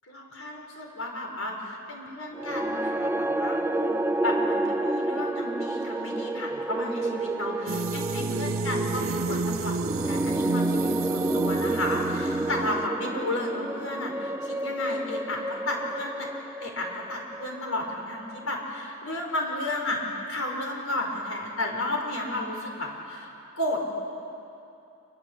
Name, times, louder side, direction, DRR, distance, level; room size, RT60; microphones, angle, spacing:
voice 1, 0.1-16.3 16.6-23.8, left 1 dB, 90° left, 1 dB, 5.0 m, -33 dB
sound 1, 2.3-18.6, right 2 dB, 10° right, 0.5 m, -30 dB
sound 2, 7.7-12.9, right 4 dB, 70° right, 0.6 m, -31 dB
26.5 x 22.5 x 8.1 m, 2.7 s
head